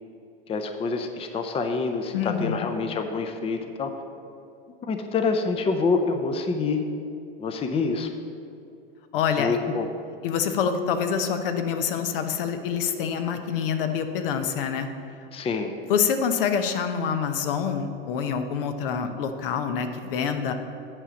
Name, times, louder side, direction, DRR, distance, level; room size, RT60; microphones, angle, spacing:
voice 1, 0.5-3.9 4.9-6.8 7.4-8.1 9.4-9.9 15.3-15.7, left 4 dB, 20° left, 6 dB, 0.7 m, -26 dB
voice 2, 2.1-2.7 9.1-9.6 10.2-14.9 15.9-20.5, left 7 dB, 65° left, 7 dB, 0.9 m, -26 dB
8.8 x 4.9 x 7.1 m, 2.6 s
hypercardioid pair, 95°, 30 cm